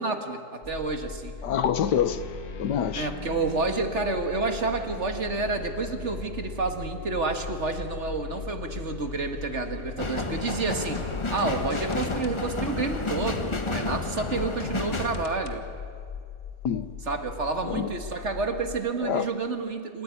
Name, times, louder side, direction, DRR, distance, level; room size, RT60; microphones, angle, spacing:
voice 1, 0.0-1.4 3.0-15.7 17.0-20.0, right 3 dB, 45° right, 1.9 m, -29 dB
sound 1, 0.6-18.8, left 6 dB, 35° left, 2.6 m, -40 dB
voice 2, 1.4-2.2 2.6-3.1 16.6-16.9 17.7-17.9 19.0-19.3, left 8 dB, 80° left, 1.6 m, -26 dB
sound 2, 1.9-10.4 10.9-12.3 14.2-15.6, left 4 dB, 65° left, 1.8 m, -42 dB
sound 3, 10.0-15.2, left 3 dB, 20° left, 0.9 m, -31 dB
27.5 x 14.5 x 9.8 m
omnidirectional pair, 1.8 m